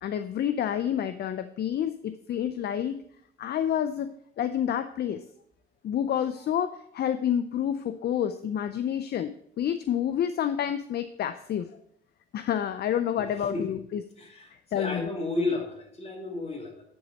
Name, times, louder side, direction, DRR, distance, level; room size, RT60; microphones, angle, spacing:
voice 1, 0.0-3.0 3.4-4.1 4.4-5.2 5.8-11.7 12.3-14.0 14.7-15.1, left 9 dB, 55° left, 11 dB, 0.5 m, -29 dB
voice 2, 14.2-14.5 14.7-16.8, left 2 dB, 30° left, 0 dB, 2.4 m, -32 dB
10.5 x 4.1 x 5.1 m, 0.71 s
cardioid pair, 90°, 20 cm